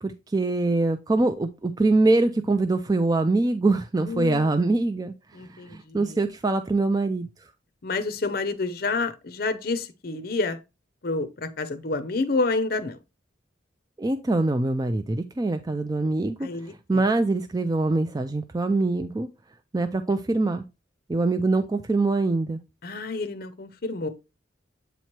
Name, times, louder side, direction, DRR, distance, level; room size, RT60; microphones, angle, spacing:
voice 1, 0.0-5.1 5.7-7.3 14.0-19.3 19.7-20.6 21.1-22.6, right 2 dB, 20° right, 0.4 m, -24 dB
voice 2, 4.0-4.6 5.3-6.2 7.8-10.6 11.0-13.0 16.4-17.0 22.8-24.1, left 3 dB, 50° left, 0.6 m, -29 dB
8.0 x 3.1 x 4.4 m
head